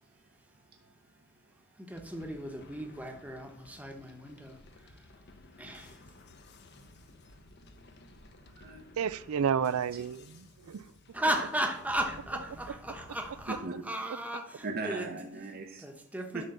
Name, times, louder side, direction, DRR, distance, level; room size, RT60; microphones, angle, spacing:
voice 1, 1.7-5.2 5.6-6.0 11.1-15.1 15.8-16.5, right 1 dB, 5° right, 1.1 m, -36 dB
sound 1, 1.9-13.6, left 2 dB, 50° left, 0.9 m, -55 dB
voice 2, 8.4-8.9 9.6-9.7 13.6-13.7 14.6-15.9 16.3-16.5, right 3 dB, 45° right, 0.8 m, -38 dB
voice 3, 9.0-11.2, right 7 dB, 80° right, 0.4 m, -31 dB
10.5 x 3.7 x 6.7 m
head